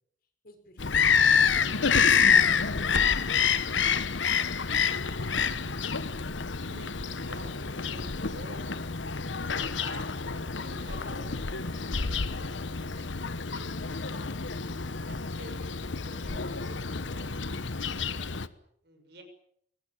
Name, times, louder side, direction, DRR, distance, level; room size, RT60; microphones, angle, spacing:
voice 1, 0.4-4.9, equal, 55° left, 6 dB, 5.7 m, -54 dB
Bird vocalization bird call bird song, 0.8-18.5, left 6 dB, 90° left, 1.2 m, -28 dB
voice 2, 6.6-8.7 9.4-13.8 15.1-17.4 17.9-18.4 18.8-19.2, right 1 dB, 60° right, 7 dB, 6.3 m, -49 dB
23.5 x 19.0 x 9.4 m, 0.71 s
head